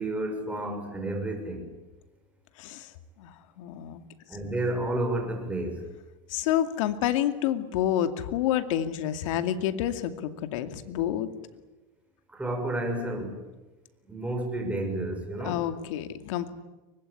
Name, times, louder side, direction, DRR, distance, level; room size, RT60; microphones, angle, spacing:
voice 1, 0.0-1.7 4.3-5.8 12.3-13.4 14.0-15.6, right 1 dB, 10° right, 3 dB, 6.5 m, -31 dB
voice 2, 2.6-2.9 3.2-4.0 6.3-11.3 15.4-16.5, left 11 dB, 75° left, 9 dB, 2.4 m, -28 dB
24.0 x 21.0 x 10.0 m, 1.1 s
supercardioid pair, 120°, 17 cm